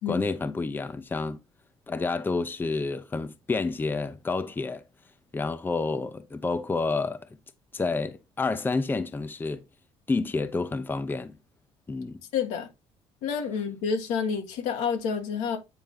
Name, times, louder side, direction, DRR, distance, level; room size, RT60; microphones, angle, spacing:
voice 1, 0.1-1.4 1.9-4.8 5.3-7.3 7.7-9.6 10.1-11.4 11.9-12.2, left 3 dB, 15° left, 0.6 m, -29 dB
voice 2, 12.3-12.7 13.2-15.6, left 6 dB, 90° left, 1.9 m, -29 dB
8.9 x 4.1 x 3.7 m
cardioid pair, 115°, 12 cm